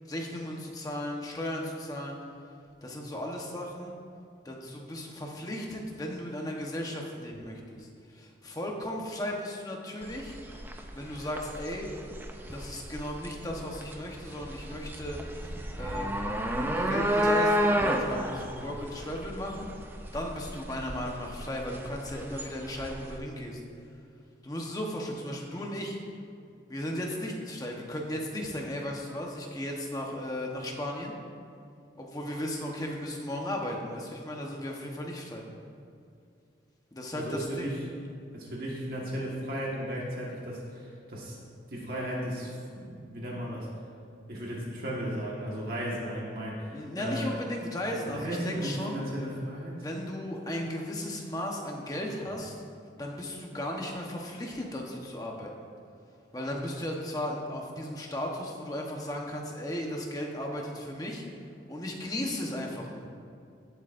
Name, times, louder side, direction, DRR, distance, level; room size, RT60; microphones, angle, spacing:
voice 1, 0.1-2.2 2.8-4.0 4.4-10.4 10.9-11.9 12.5-19.7 20.1-23.6 24.4-26.0 26.7-31.1 32.0-35.4 36.9-37.7 46.7-49.0 49.8-52.6 53.0-55.5 56.3-61.2 61.7-63.1, left 1 dB, 20° left, 0 dB, 1.1 m, -36 dB
sound 1, 10.0-23.2, equal, 10° right, 0.6 m, -31 dB
voice 2, 37.1-37.8 38.3-41.4 41.7-43.7 44.3-47.3 48.1-49.8, equal, 50° right, -5 dB, 1.6 m, -35 dB
17.5 x 7.9 x 2.6 m, 2.4 s
head